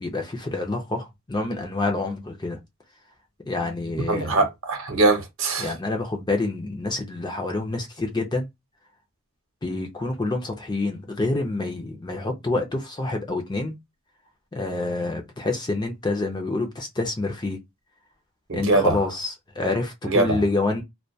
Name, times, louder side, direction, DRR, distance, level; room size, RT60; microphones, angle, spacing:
voice 1, 0.0-2.6 3.5-4.4 5.6-8.5 9.6-13.7 14.5-17.6 18.5-20.8, left 2 dB, 20° left, 0.4 m, -27 dB
voice 2, 4.1-5.7 18.5-19.0 20.0-20.4, right 2 dB, 60° right, 0.8 m, -22 dB
2.2 x 2.2 x 2.6 m
head